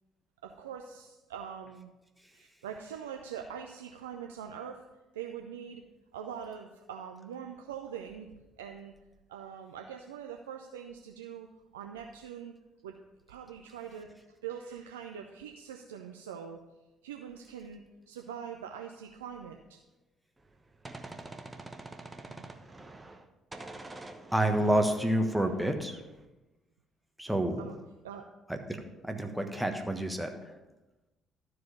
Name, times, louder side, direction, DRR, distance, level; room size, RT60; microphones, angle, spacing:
voice 1, 0.4-1.9 2.3-4.8 5.1-5.8 6.1-8.3 8.6-8.9 9.3-11.5 11.7-12.5 12.8-12.9 13.3-14.1 14.4-16.6 17.0-19.8 22.3-22.5 27.6-27.7 28.0-28.3, right 8 dB, 75° right, 3 dB, 0.4 m, -43 dB
Gunshot gunfire, 20.4-23.3 23.5-26.2, right 2 dB, 20° right, 0.9 m, -46 dB
voice 2, 24.3-26.0 27.2-27.7 28.5-28.6 29.0-30.6, right 1 dB, 5° right, 5 dB, 1.3 m, -28 dB
12.5 x 4.8 x 5.3 m, 1.1 s
figure-of-eight pair, 45°, 0 cm